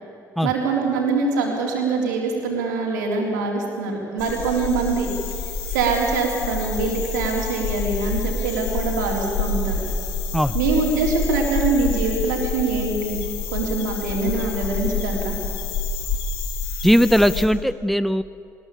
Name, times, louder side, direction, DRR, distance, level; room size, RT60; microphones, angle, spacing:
voice 1, 0.4-5.1 5.7-9.8 10.5-13.2 13.5-15.4, right 4 dB, 80° right, 0 dB, 3.7 m, -24 dB
sound 1, 4.2-17.5, left 4 dB, 70° left, 2.5 m, -28 dB
voice 2, 16.8-18.2, equal, ahead, 15 dB, 0.9 m, -18 dB
20.5 x 20.0 x 8.5 m, 2.4 s
hypercardioid pair, 50°, 10 cm